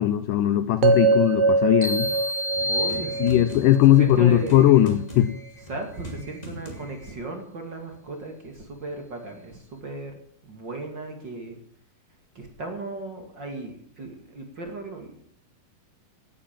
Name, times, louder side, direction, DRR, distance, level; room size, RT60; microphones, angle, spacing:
voice 1, 0.0-2.1 3.2-5.3, left 13 dB, 75° left, 12 dB, 2.0 m, -19 dB
sound 1, 0.8-4.9, right 4 dB, 70° right, 2.5 m, -24 dB
sound 2, 1.8-3.7, left 1 dB, 5° right, 2.7 m, -29 dB
sound 3, 2.0-7.2, right 1 dB, 10° left, 2.4 m, -40 dB
voice 2, 2.7-3.5 4.0-4.7 5.7-10.1 10.4-11.5 12.3-15.2, right 2 dB, 35° right, 3 dB, 2.4 m, -36 dB
17.5 x 9.1 x 7.6 m, 0.63 s
omnidirectional pair, 4.3 m